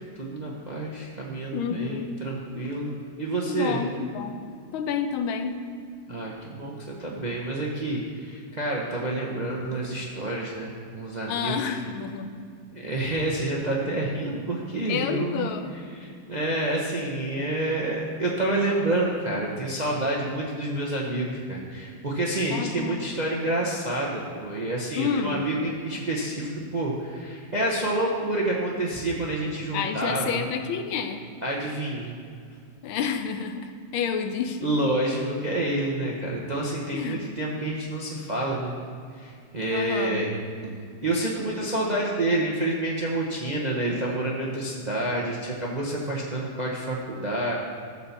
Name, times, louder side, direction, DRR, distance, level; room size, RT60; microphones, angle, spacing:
voice 1, 0.0-2.9 3.2-3.8 6.1-11.7 12.7-15.5 15.9-30.4 31.4-32.1 34.6-38.7 39.1-40.3 41.0-47.5, right 1 dB, 45° right, -3 dB, 0.5 m, -28 dB
voice 2, 1.5-2.1 3.4-4.4 4.7-5.6 11.3-12.3 14.9-15.7 22.5-23.0 24.9-25.4 29.7-31.2 32.8-34.7 36.9-37.3 39.7-40.3, left 7 dB, 85° left, 7 dB, 1.5 m, -29 dB
12.0 x 4.2 x 7.0 m, 2.3 s
omnidirectional pair, 2.2 m